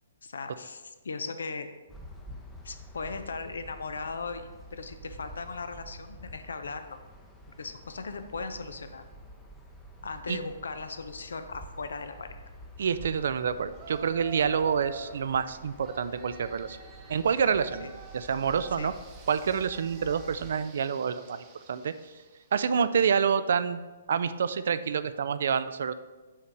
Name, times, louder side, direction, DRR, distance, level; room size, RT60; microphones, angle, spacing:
voice 1, 0.2-1.7 2.6-7.0 7.6-9.0 10.0-12.4 18.7-18.9, left 4 dB, 80° left, 9 dB, 0.5 m, -38 dB
sound 1, 1.9-20.5, right 1 dB, 5° left, 0.6 m, -49 dB
voice 2, 12.8-16.8 17.1-18.9 19.3-21.9 22.5-23.8 24.1-25.9, right 7 dB, 65° right, 13 dB, 0.3 m, -27 dB
Yell, 13.7-15.3 15.8-22.5, right 3 dB, 25° right, 0.8 m, -49 dB
5.6 x 3.2 x 5.2 m, 1.2 s
hypercardioid pair, 135°, 0 cm